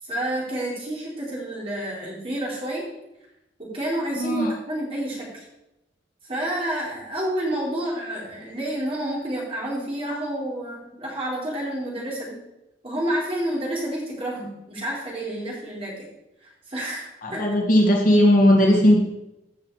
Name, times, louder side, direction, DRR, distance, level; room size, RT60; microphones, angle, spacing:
voice 1, 0.0-2.9 3.6-5.4 6.2-12.4 12.8-16.1 16.4-17.4, right 1 dB, 30° right, -4 dB, 4.4 m, -29 dB
voice 2, 4.2-4.5 17.2-19.0, left 1 dB, 45° left, 0 dB, 2.0 m, -17 dB
15.0 x 6.6 x 4.9 m, 0.89 s
head